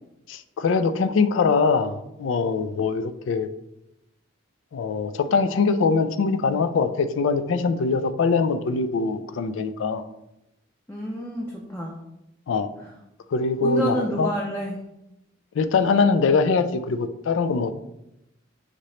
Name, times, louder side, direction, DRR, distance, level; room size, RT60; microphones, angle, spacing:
voice 1, 0.3-3.5 4.7-10.0 12.5-12.7 13.3-14.3 15.6-17.7, left 4 dB, 75° left, 10 dB, 0.3 m, -22 dB
voice 2, 10.9-12.0 12.8-12.9 13.6-14.8, equal, 10° left, -3 dB, 0.4 m, -28 dB
5.1 x 2.8 x 3.1 m, 0.87 s
head